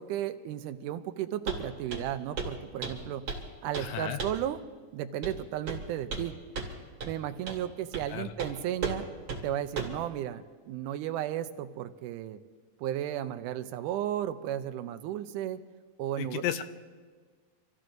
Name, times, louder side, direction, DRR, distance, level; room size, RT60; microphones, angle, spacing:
voice 1, 0.0-3.2 3.6-4.6 4.9-6.4 7.0-9.1 9.4-12.4 12.8-15.6 16.0-16.4, right 11 dB, 90° right, 9 dB, 2.1 m, -34 dB
Walk footsteps, 1.5-1.6 1.9-2.1 2.4-2.5 2.8-3.5 3.7-3.9 4.2-4.4 5.2-5.4 5.7-6.3 6.5-6.7 7.0-7.1 7.5-7.6 7.9-8.1 8.4-8.5 8.8-9.0 9.3-9.4 9.8-10.0, right 4 dB, 45° right, 3.1 m, -35 dB
voice 2, 3.8-4.2 8.1-8.2 16.2-16.6, left 11 dB, 80° left, 9 dB, 2.0 m, -33 dB
28.5 x 15.0 x 2.6 m, 1.5 s
omnidirectional pair, 3.6 m